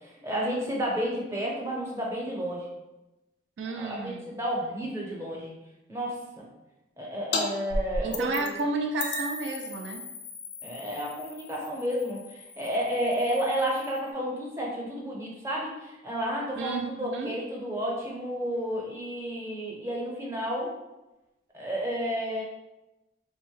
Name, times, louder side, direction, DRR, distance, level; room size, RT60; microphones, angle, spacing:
voice 1, 0.0-2.6 3.8-5.5 5.9-6.4 7.0-8.6 10.6-20.7 21.5-22.4, equal, 15° right, -3 dB, 0.6 m, -31 dB
voice 2, 3.6-4.3 8.0-10.0 16.6-17.3, right 3 dB, 70° right, 4 dB, 0.3 m, -32 dB
sound 1, 7.3-7.4 7.7-8.6 9.0-14.1, left 3 dB, 85° left, 0.5 m, -36 dB
3.5 x 2.0 x 3.1 m, 0.99 s
head